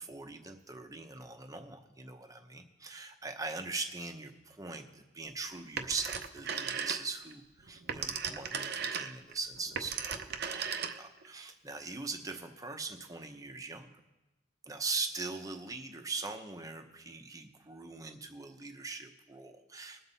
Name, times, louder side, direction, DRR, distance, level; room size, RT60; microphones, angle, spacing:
voice 1, 0.0-10.7 10.9-13.9 14.6-20.0, right 4 dB, 15° right, 6 dB, 0.8 m, -41 dB
Telephone, 5.8-7.3 7.7-11.3, right 7 dB, 55° right, 0.6 m, -36 dB
21.0 x 7.3 x 4.1 m, 1.1 s
head